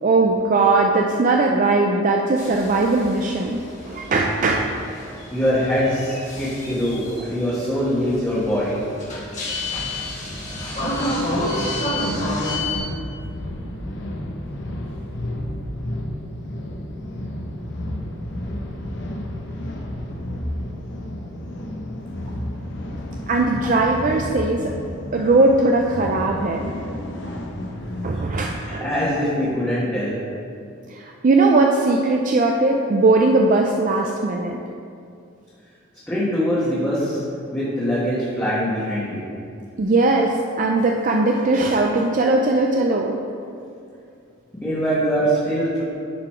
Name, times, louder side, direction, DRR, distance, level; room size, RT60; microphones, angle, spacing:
voice 1, 0.0-4.8 23.3-24.7 25.1-26.6 27.2-27.3 28.0-28.9 30.9-34.6 39.8-43.2, right 2 dB, 40° right, 1 dB, 0.4 m, -19 dB
sound 1, 2.4-12.8, left 1 dB, 35° left, 1.7 m, -30 dB
voice 2, 5.3-8.8 28.1-28.2 28.6-30.2 36.1-37.2 37.5-39.3 44.6-45.8, equal, 10° left, -11 dB, 1.3 m, -23 dB
sound 2, 8.8-28.2, left 1 dB, 60° left, 0.8 m, -32 dB
10.5 x 4.0 x 4.4 m, 2.5 s
head